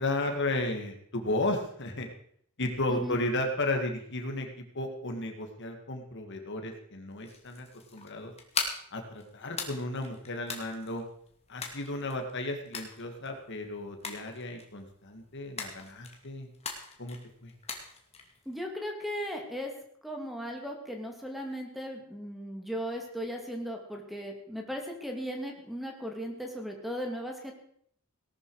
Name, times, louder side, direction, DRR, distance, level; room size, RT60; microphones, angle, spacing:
voice 1, 0.0-2.1 2.6-4.5 4.7-7.7 7.9-8.3 8.9-11.0 11.5-16.5 17.0-17.2 17.4-17.5, left 2 dB, 55° left, 4 dB, 2.1 m, -33 dB
sound 1, 7.1-18.6, left 5 dB, 30° left, 2.4 m, -41 dB
voice 2, 18.5-19.7 20.0-27.5, equal, ahead, 2 dB, 2.4 m, -37 dB
18.0 x 12.5 x 4.9 m, 0.66 s
head